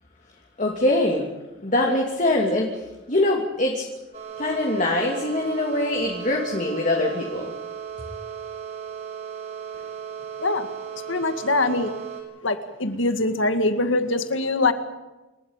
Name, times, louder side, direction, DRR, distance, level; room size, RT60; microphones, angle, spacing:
voice 1, 0.6-1.3 1.6-2.8 3.1-3.8 4.4-7.5, left 1 dB, 40° left, 0 dB, 2.9 m, -23 dB
sound 1, 4.1-12.2, right 7 dB, 40° right, 6.4 m, -36 dB
voice 2, 11.1-11.9 12.4-14.7, left 2 dB, 80° left, 8 dB, 2.1 m, -23 dB
28.0 x 14.0 x 9.0 m, 1.1 s
head